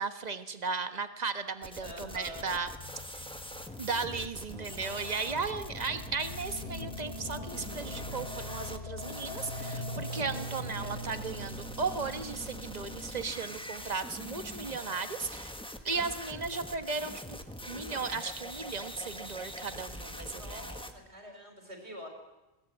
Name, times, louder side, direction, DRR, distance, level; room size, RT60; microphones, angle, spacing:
voice 1, 0.0-2.7 3.8-15.5 15.8-17.4 17.7-20.7, right 4 dB, 40° right, 9 dB, 1.4 m, -36 dB
sound 1, 1.6-20.9, equal, 5° left, 1.4 m, -43 dB
voice 2, 1.8-2.5 20.3-22.1, equal, 85° right, 4 dB, 5.0 m, -46 dB
sound 2, 2.2-14.5, left 1 dB, 85° left, 3.7 m, -43 dB
21.5 x 17.5 x 9.4 m, 1.0 s
omnidirectional pair, 1.1 m